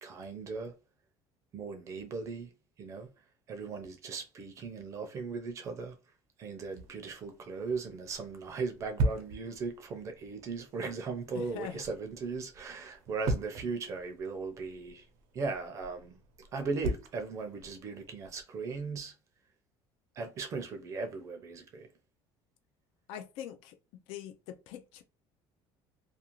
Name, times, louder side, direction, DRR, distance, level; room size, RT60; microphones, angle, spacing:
voice 1, 0.0-0.7 1.5-2.5 2.8-3.1 3.5-5.9 6.4-15.0 15.3-16.1 16.4-19.1 20.2-21.9, right 4 dB, 30° right, 0.5 m, -38 dB
sound 1, 6.7-18.4, right 2 dB, 85° right, 0.6 m, -40 dB
voice 2, 11.3-11.8 23.1-23.8 24.1-25.0, left 10 dB, 75° left, 0.4 m, -43 dB
2.5 x 2.3 x 2.9 m
cardioid pair, 175°, 10 cm